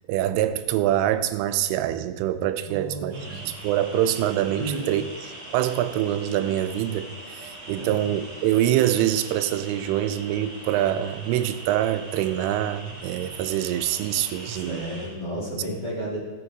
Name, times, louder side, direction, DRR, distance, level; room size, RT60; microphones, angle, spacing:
voice 1, 0.1-5.0 5.5-14.8, right 12 dB, 90° right, 11 dB, 3.2 m, -25 dB
voice 2, 2.7-3.4 4.6-4.9 7.8-8.0 14.4-16.2, right 1 dB, 25° left, -6 dB, 3.2 m, -33 dB
sound 1, 3.1-15.1, right 1 dB, 40° right, 4.8 m, -42 dB
16.0 x 8.6 x 4.7 m, 1.4 s
omnidirectional pair, 5.6 m